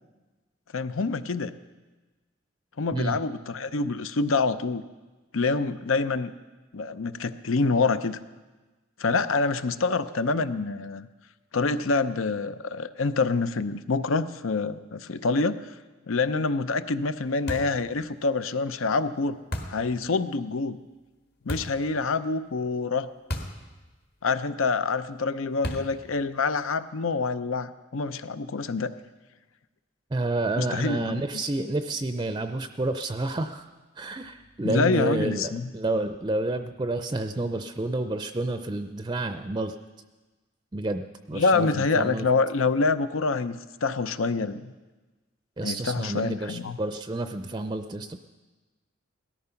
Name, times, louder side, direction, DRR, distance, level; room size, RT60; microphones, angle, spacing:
voice 1, 0.7-1.5 2.8-4.8 5.3-6.3 6.7-8.2 9.0-11.1 11.5-15.7 16.1-19.4 19.7-20.8 21.5-23.1 24.2-28.9 30.6-31.2 34.6-35.7 41.3-44.7 45.6-46.8, left 4 dB, 80° left, 13 dB, 0.7 m, -26 dB
sound 1, 17.5-17.9 19.5-19.9 21.5-21.8 23.3-23.7 23.9-24.0 25.6-26.0, equal, 50° left, 1.7 m, -33 dB
voice 2, 30.1-33.7 34.0-39.7 40.7-42.3 45.6-48.2, right 2 dB, 20° right, 8 dB, 0.5 m, -29 dB
17.5 x 13.5 x 5.8 m, 1.2 s
head